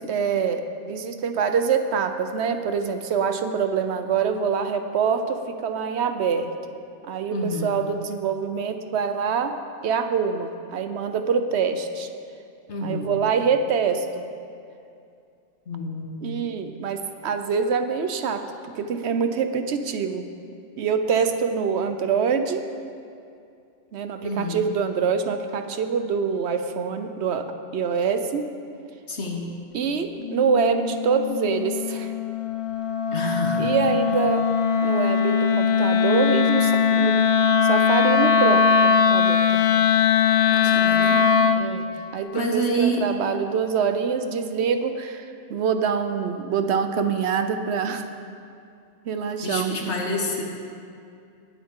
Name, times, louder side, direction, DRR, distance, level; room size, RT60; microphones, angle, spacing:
voice 1, 0.0-6.5 7.1-9.6 9.8-12.1 12.8-14.2 16.2-18.4 18.8-20.3 20.8-22.6 23.9-27.5 27.7-28.5 29.7-32.1 33.6-34.4 34.8-37.2 37.6-39.7 41.5-48.1 49.1-49.8 50.0-50.1, right 6 dB, 70° right, 8 dB, 1.0 m, -25 dB
voice 2, 7.3-7.8 12.7-13.1 15.7-16.5 24.2-24.6 29.1-29.6 33.1-33.7 40.5-41.3 41.9-42.0 42.3-43.1 49.4-50.4, equal, 75° left, 1 dB, 1.5 m, -28 dB
Wind instrument woodwind instrument, 30.2-41.7, left 6 dB, 60° left, 0.3 m, -20 dB
19.5 x 7.9 x 3.7 m, 2.5 s
omnidirectional pair, 1.2 m